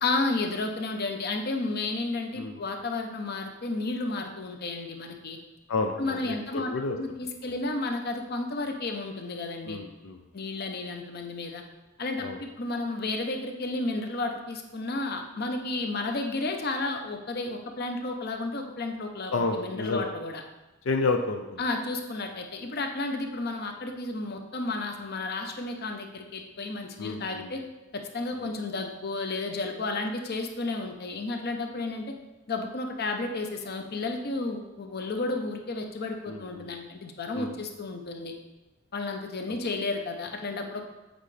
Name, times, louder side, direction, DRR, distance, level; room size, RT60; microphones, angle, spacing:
voice 1, 0.0-5.4 6.0-6.7 7.0-9.8 10.3-11.6 12.0-20.4 21.6-27.6 27.9-32.1 32.5-38.3 38.9-40.8, left 2 dB, 55° left, 4 dB, 0.7 m, -32 dB
voice 2, 5.7-7.0 9.7-10.2 12.2-12.4 19.3-20.1 20.9-21.6 27.0-27.5 36.3-36.7 37.3-37.5 39.5-39.6, left 3 dB, 85° left, 4 dB, 0.5 m, -30 dB
7.9 x 5.1 x 3.3 m, 1.1 s
head